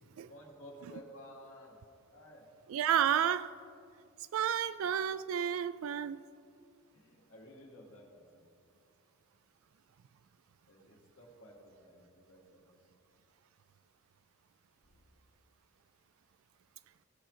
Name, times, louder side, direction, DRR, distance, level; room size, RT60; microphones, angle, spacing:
voice 1, 0.3-1.8 2.1-2.4 6.9-8.5 10.7-12.8 14.9-15.0, equal, 75° left, -2 dB, 2.3 m, -54 dB
voice 2, 2.7-3.5 4.3-6.2, right 9 dB, 85° right, 14 dB, 0.3 m, -31 dB
17.0 x 6.1 x 4.7 m, 2.4 s
head